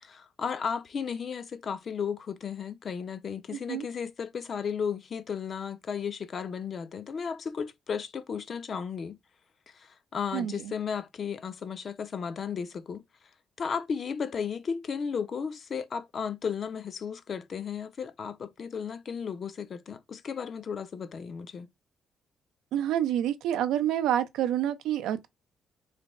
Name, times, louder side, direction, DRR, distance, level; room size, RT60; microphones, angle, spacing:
voice 1, 0.0-9.2 9.7-13.0 13.6-21.7, left 6 dB, 50° left, 0.5 m, -34 dB
voice 2, 10.3-10.7 22.7-25.3, right 11 dB, 90° right, 0.4 m, -28 dB
3.3 x 2.2 x 4.0 m
cardioid pair, 90°, 0 cm